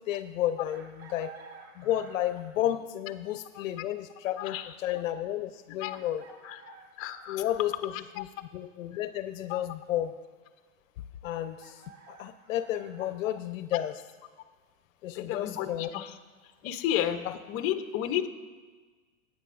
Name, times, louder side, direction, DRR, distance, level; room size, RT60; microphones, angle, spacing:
voice 1, 0.1-1.3 1.8-6.2 7.3-8.3 8.5-10.1 11.2-11.8 12.1-14.0 15.0-15.9, left 12 dB, 70° left, 11 dB, 0.7 m, -32 dB
Chicken rooster, 0.7-2.6 4.3-4.4 5.9-7.8 11.3-13.1, right 5 dB, 70° right, 1.9 m, -52 dB
voice 2, 3.5-3.9 4.4-4.8 5.8-6.0 6.4-6.6 7.0-7.5 7.9-8.2 9.5-9.6 15.1-16.1 16.6-18.3, left 11 dB, 35° left, 8 dB, 0.8 m, -32 dB
18.0 x 9.1 x 2.6 m, 1.4 s
hypercardioid pair, 125°, 41 cm